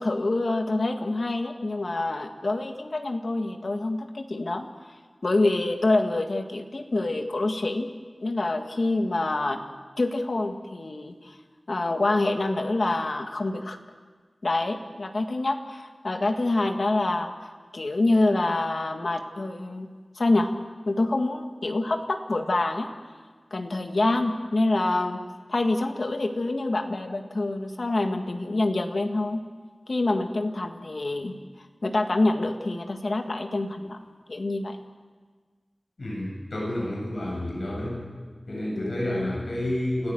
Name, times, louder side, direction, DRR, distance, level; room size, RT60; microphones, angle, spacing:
voice 1, 0.0-4.7 5.2-7.9 8.2-9.6 10.0-11.1 11.7-13.8 14.4-17.3 17.7-19.9 20.2-20.5 20.9-22.9 23.5-25.2 25.5-29.4 29.9-31.3 31.8-34.8 38.7-38.9, left 2 dB, 75° left, 5 dB, 1.9 m, -26 dB
voice 2, 36.0-38.0 38.5-40.1, left 1 dB, 90° left, -3 dB, 7.8 m, -30 dB
29.0 x 15.0 x 7.9 m, 1.5 s
wide cardioid pair, 55°, 0 cm